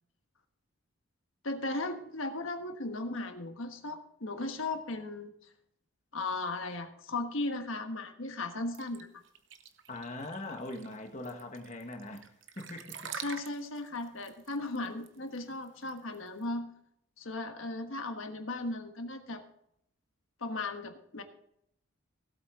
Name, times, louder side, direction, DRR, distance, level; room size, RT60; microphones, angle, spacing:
voice 1, 1.4-5.3 6.1-9.1 13.2-16.7 17.2-19.4 20.4-21.2, left 2 dB, 75° left, 6 dB, 1.4 m, -36 dB
sound 1, 8.7-16.4, right 7 dB, 60° right, 0.9 m, -46 dB
voice 2, 9.9-13.1, left 2 dB, 35° left, 4 dB, 1.4 m, -42 dB
17.0 x 8.2 x 3.7 m, 0.73 s
head